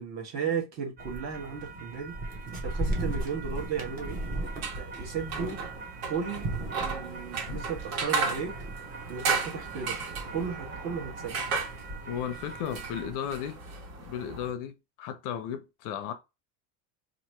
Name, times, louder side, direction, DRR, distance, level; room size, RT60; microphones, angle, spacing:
voice 1, 0.0-2.2 2.6-4.2 4.8-5.6 6.1-8.6 9.1-10.0 10.3-11.4, right 6 dB, 40° right, 1.3 m, -35 dB
sound 1, 1.0-13.1, right 2 dB, 20° right, 0.8 m, -37 dB
sound 2, 4.4-14.5, right 4 dB, 80° right, 1.6 m, -35 dB
voice 2, 12.1-13.6 14.0-14.7 15.0-16.1, left 9 dB, 50° left, 0.6 m, -35 dB
2.9 x 2.6 x 4.4 m
cardioid pair, 160°, 39 cm